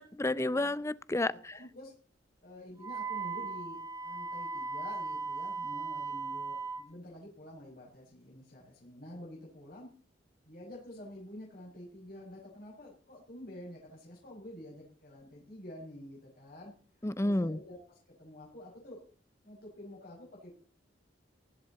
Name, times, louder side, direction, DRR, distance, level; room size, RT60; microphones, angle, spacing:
voice 1, 0.0-1.5 17.0-17.6, left 1 dB, 15° left, 0.5 m, -31 dB
voice 2, 1.3-1.9 2.4-9.9 10.4-16.7 17.0-19.0 19.4-20.5, left 1 dB, 55° left, 5.5 m, -49 dB
Wind instrument woodwind instrument, 2.8-6.9, right 4 dB, 20° right, 1.2 m, -37 dB
18.0 x 11.5 x 4.2 m
head